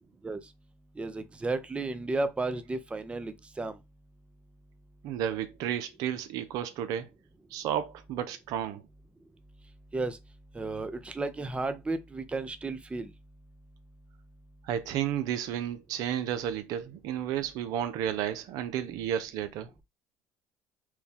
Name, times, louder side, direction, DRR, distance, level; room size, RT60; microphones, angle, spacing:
voice 1, 1.0-3.8 9.9-10.2 10.5-13.1, right 3 dB, 15° right, 0.6 m, -33 dB
voice 2, 5.0-7.1 7.5-8.8 14.6-19.7, right 10 dB, 70° right, 0.5 m, -32 dB
4.5 x 2.2 x 3.4 m
supercardioid pair, 75°, 6 cm